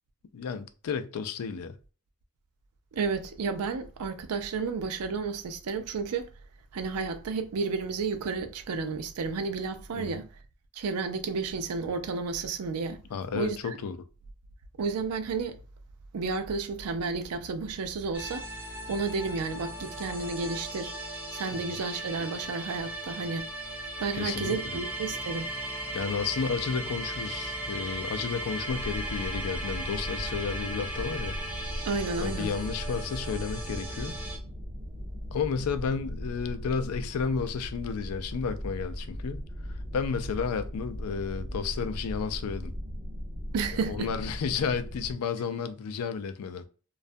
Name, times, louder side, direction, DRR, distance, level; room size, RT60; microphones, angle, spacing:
voice 1, 0.3-1.8 9.9-10.2 13.1-14.0 21.7-21.8 24.1-24.8 25.9-31.4 32.2-34.2 35.3-39.4 39.9-42.7 43.8-46.7, left 6 dB, 70° left, 0.4 m, -32 dB
voice 2, 2.9-6.3 6.7-10.3 10.7-13.0 13.3-13.6 14.8-15.6 16.1-18.4 18.9-20.9 21.3-23.5 24.0-25.5 31.9-32.5 43.5-44.1, right 4 dB, 80° right, 0.4 m, -31 dB
sound 1, 18.1-34.4, right 1 dB, 5° right, 0.8 m, -37 dB
sound 2, 28.7-45.1, equal, 35° right, 0.8 m, -38 dB
2.3 x 2.1 x 2.5 m
head